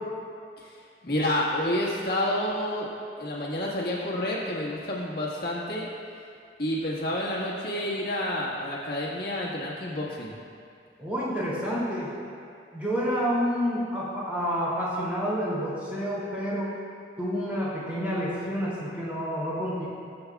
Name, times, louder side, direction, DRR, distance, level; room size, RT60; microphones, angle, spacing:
voice 1, 1.0-2.9 3.2-5.9 6.6-10.3, left 1 dB, 55° left, -5 dB, 1.6 m, -29 dB
voice 2, 11.0-12.1 12.7-16.7 17.2-19.9, equal, 10° right, -9 dB, 2.6 m, -29 dB
21.5 x 7.7 x 2.3 m, 2.4 s
head